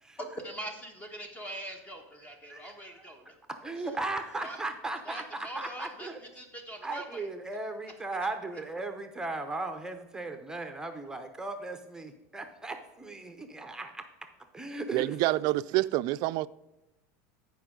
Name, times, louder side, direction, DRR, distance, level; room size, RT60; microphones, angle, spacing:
voice 1, 0.2-3.3 3.8-4.0 4.4-4.6 5.0-7.3 8.5-8.6, right 1 dB, 20° left, 1.3 m, -42 dB
voice 2, 3.6-6.2 6.8-14.0 14.5-15.2, right 2 dB, 10° right, 0.8 m, -37 dB
voice 3, 14.9-16.5, right 18 dB, 55° right, 0.4 m, -27 dB
14.0 x 5.3 x 3.8 m
supercardioid pair, 115°, 8 cm